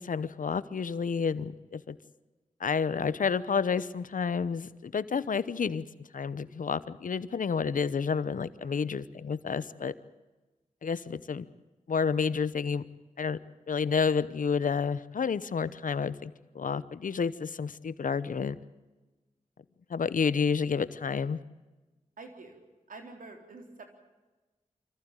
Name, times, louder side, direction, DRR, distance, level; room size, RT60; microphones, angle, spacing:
voice 1, 0.0-2.0 2.6-9.9 10.8-11.5 11.9-12.8 13.2-13.4 13.7-18.6 19.9-21.4, left 6 dB, 80° left, 16 dB, 0.9 m, -30 dB
voice 2, 22.2-22.6 22.9-23.9, right 3 dB, 90° right, 4 dB, 3.8 m, -47 dB
25.5 x 14.5 x 8.9 m, 1.2 s
cardioid pair, 50°, 14 cm